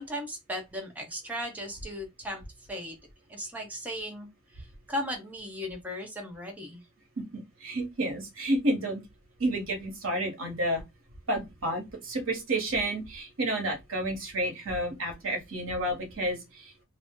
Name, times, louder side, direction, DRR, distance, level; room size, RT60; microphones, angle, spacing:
voice 1, 0.0-2.4 2.7-2.9 3.3-6.8, equal, 10° right, 0.7 m, -37 dB
voice 2, 7.3-9.0 9.4-10.8 11.3-16.8, right 1 dB, 75° right, 1.0 m, -30 dB
2.6 x 2.0 x 3.5 m
head